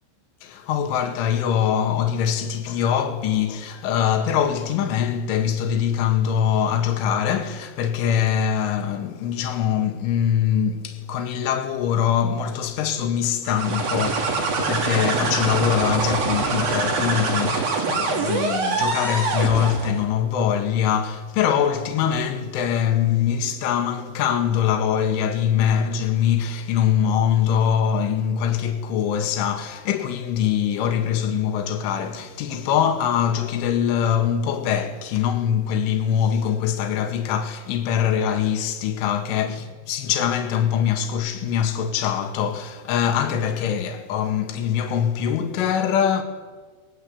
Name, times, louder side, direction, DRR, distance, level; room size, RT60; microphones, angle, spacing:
voice 1, 0.4-46.2, left 8 dB, 70° left, 4.3 m, -23 dB
sound 1, 13.5-20.0, right 4 dB, 50° right, 4.8 m, -24 dB
30.0 x 21.0 x 8.6 m
omnidirectional pair, 6.0 m